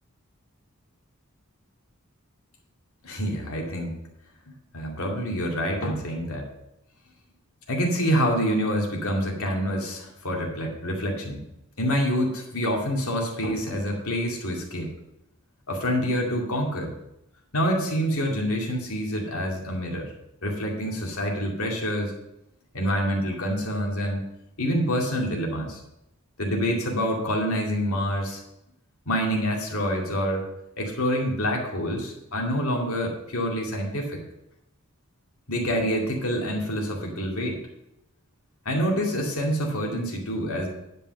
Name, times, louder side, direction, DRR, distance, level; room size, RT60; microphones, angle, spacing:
voice 1, 3.0-3.9 4.5-6.5 7.7-11.4 11.8-14.9 15.7-16.9 17.5-20.1 20.4-22.1 22.7-24.2 24.6-25.8 26.4-28.4 29.1-30.5 30.8-34.2 35.5-37.6 38.7-40.7, equal, 85° left, 0 dB, 2.3 m, -27 dB
10.0 x 5.3 x 6.5 m, 0.83 s
head